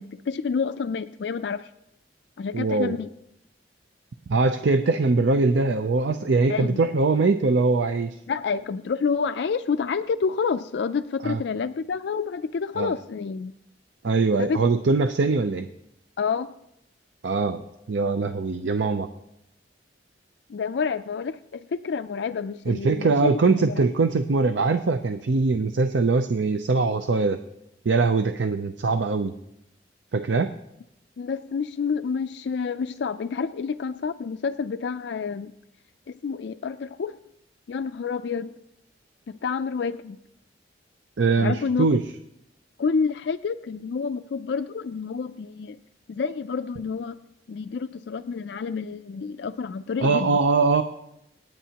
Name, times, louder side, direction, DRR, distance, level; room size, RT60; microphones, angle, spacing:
voice 1, 0.0-1.7 2.4-3.1 6.5-6.8 8.3-13.5 14.4-14.6 16.2-16.5 20.5-23.9 31.2-35.5 36.1-37.2 37.7-38.5 39.3-40.2 41.4-42.0 42.8-45.8 46.1-47.2 47.5-50.4, left 5 dB, 65° left, 10 dB, 0.4 m, -29 dB
voice 2, 2.5-3.0 4.3-8.2 11.2-11.4 12.8-12.9 14.0-15.7 17.2-17.6 17.9-19.1 22.7-27.4 27.9-29.3 30.1-30.5 41.2-42.0 50.0-50.8, right 3 dB, 85° right, 8 dB, 0.6 m, -22 dB
27.0 x 9.1 x 2.9 m, 0.82 s
head